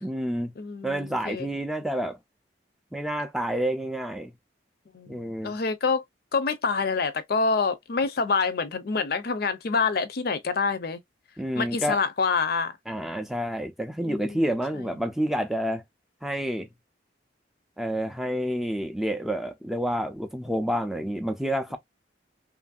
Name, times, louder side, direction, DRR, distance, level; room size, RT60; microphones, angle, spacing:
voice 1, 0.0-0.5 0.8-2.2 2.9-4.3 5.1-5.6 11.4-12.0 12.9-15.8 16.2-16.7 17.8-21.8, equal, ahead, 0.3 m, -29 dB
voice 2, 0.6-1.5 4.9-6.0 6.3-11.0 11.6-12.7 14.0-14.9, left 4 dB, 60° left, 0.5 m, -27 dB
3.0 x 2.5 x 2.3 m
head